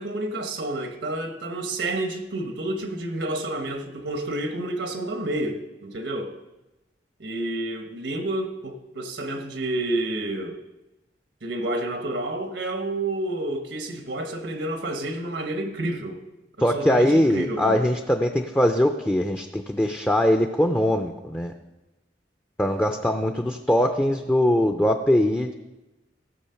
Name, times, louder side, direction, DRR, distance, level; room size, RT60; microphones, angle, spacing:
voice 1, 0.0-6.4 7.2-10.6 11.4-16.2 16.6-17.8, right 1 dB, 80° right, 5 dB, 1.3 m, -29 dB
voice 2, 16.6-21.5 22.6-25.5, left 1 dB, 10° left, 4 dB, 0.5 m, -21 dB
15.5 x 7.1 x 5.7 m, 1.0 s
head